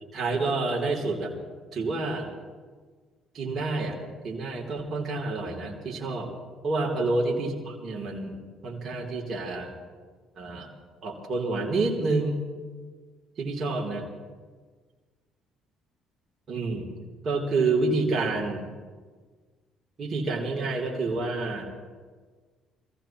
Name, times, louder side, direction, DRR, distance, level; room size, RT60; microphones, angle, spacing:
voice 1, 0.1-1.3 1.7-2.3 3.3-4.0 4.2-6.3 6.6-9.7 10.4-10.7 11.0-12.4 13.4-14.0 16.5-16.9 17.2-18.7 20.0-21.6, right 3 dB, 50° right, -1 dB, 3.0 m, -28 dB
25.0 x 15.5 x 3.0 m, 1.5 s
supercardioid pair, 65°, 0 cm